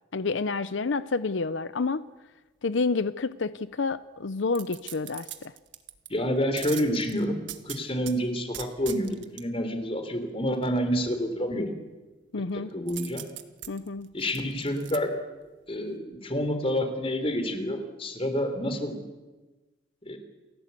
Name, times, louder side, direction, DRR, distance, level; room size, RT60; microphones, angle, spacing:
voice 1, 0.1-2.0 2.6-5.5 12.3-12.7 13.7-14.1, left 4 dB, 90° left, 14 dB, 0.7 m, -29 dB
sound 1, 4.5-6.1 6.6-8.2 8.5-9.4 12.9-15.0 15.4-15.5, right 12 dB, 85° right, 1.5 m, -40 dB
voice 2, 6.1-7.4 7.6-11.7 12.5-13.2 14.1-15.1 15.7-19.0 20.0-20.2, equal, 30° left, 7 dB, 3.3 m, -28 dB
28.5 x 16.0 x 8.3 m, 1.2 s
head